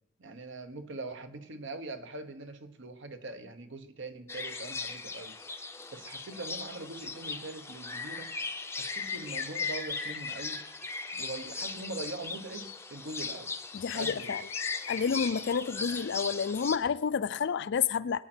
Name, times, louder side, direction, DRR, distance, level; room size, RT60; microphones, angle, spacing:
voice 1, 0.2-8.4 8.8-10.6 11.1-13.5 13.9-14.4, right 2 dB, 65° right, 1.2 m, -42 dB
sound 1, 4.3-16.8, left 4 dB, 15° left, 0.6 m, -39 dB
sound 2, 4.5-5.0 5.3-5.7 6.2-6.3 6.9-7.3 8.2-11.5 12.5-12.8 13.7-15.4, left 7 dB, 85° left, 1.0 m, -40 dB
voice 2, 13.7-14.4 14.9-18.2, left 6 dB, 60° left, 0.4 m, -30 dB
22.0 x 8.9 x 4.4 m
head